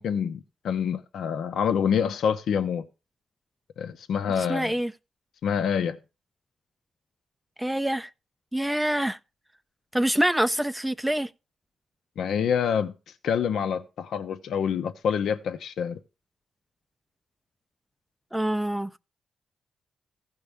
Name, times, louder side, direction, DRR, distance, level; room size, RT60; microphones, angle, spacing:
voice 1, 0.0-2.8 3.8-4.7 5.4-6.0 12.2-12.9 13.2-16.0, left 7 dB, 80° left, 0.7 m, -26 dB
voice 2, 4.5-4.9 7.6-8.1 8.5-9.2 9.9-11.3 18.3-18.9, right 1 dB, 5° right, 0.4 m, -25 dB
15.5 x 5.4 x 3.5 m
cardioid pair, 60°, 0 cm